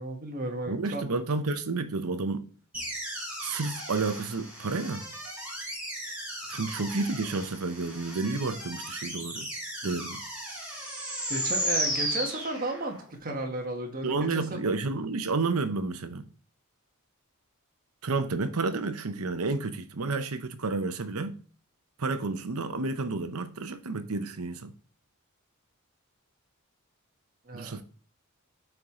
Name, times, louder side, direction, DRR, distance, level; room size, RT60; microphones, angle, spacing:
voice 1, 0.0-1.0 6.0-6.1 11.3-14.6 27.5-27.8, right 1 dB, 40° right, 1.3 m, -34 dB
voice 2, 0.7-2.4 3.4-5.1 6.5-9.5 9.8-10.2 14.0-16.3 18.0-21.3 22.0-24.7 27.5-27.8, right 3 dB, 80° right, 0.8 m, -30 dB
sound 1, 2.7-13.0, equal, 5° right, 3.4 m, -35 dB
7.8 x 4.7 x 3.7 m
head